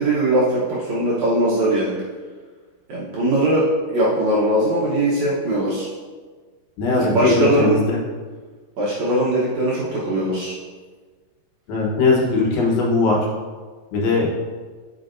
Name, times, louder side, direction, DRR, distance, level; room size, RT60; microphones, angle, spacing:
voice 1, 0.0-2.0 2.9-5.9 7.0-7.8 8.8-10.5, right 1 dB, 70° right, -7 dB, 1.7 m, -20 dB
voice 2, 6.8-8.0 11.7-13.2 13.9-14.4, left 3 dB, 70° left, -2 dB, 2.7 m, -19 dB
7.8 x 6.1 x 2.6 m, 1.4 s
omnidirectional pair, 4.7 m